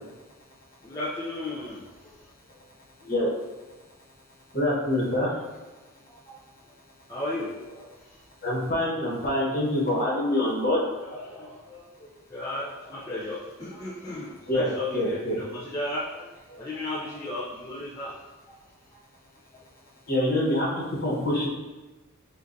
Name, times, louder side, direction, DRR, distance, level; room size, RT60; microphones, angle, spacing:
voice 1, 0.8-2.6 6.1-6.4 7.1-7.9 11.0-18.2 18.5-18.6 18.9-19.0 19.5-19.6, left 1 dB, 15° left, -8 dB, 0.5 m, -35 dB
voice 2, 4.5-5.3 8.4-10.8 14.5-15.4 20.1-21.5, left 1 dB, 40° left, -5 dB, 1.2 m, -25 dB
7.2 x 2.5 x 2.6 m, 1.2 s
head